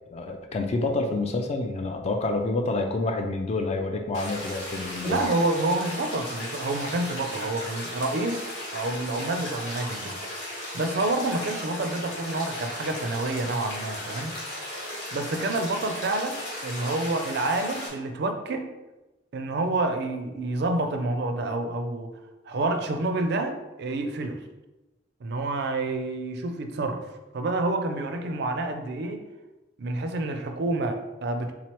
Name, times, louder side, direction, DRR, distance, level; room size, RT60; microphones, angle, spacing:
voice 1, 0.1-5.2, left 2 dB, 35° left, 4 dB, 0.3 m, -28 dB
sound 1, 4.1-17.9, left 1 dB, 80° left, 1.3 m, -36 dB
voice 2, 5.0-10.2 10.7-14.4 15.1-18.7 19.3-22.2 22.4-24.4 25.2-29.2 29.8-31.5, right 2 dB, 60° right, 6 dB, 0.4 m, -28 dB
3.7 x 3.1 x 2.9 m, 1.1 s
head